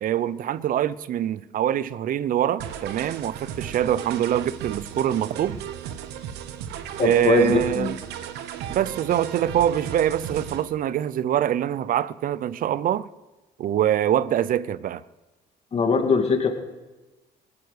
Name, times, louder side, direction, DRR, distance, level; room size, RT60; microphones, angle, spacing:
voice 1, 0.0-5.6 7.0-7.9 8.7-13.1 13.6-15.0, right 11 dB, 55° right, 0.6 m, -24 dB
sound 1, 2.6-10.6, right 9 dB, 90° right, 1.1 m, -36 dB
voice 2, 7.0-8.0 15.7-16.5, left 5 dB, 35° left, 2.4 m, -21 dB
18.0 x 9.7 x 8.2 m
cardioid pair, 110°, 17 cm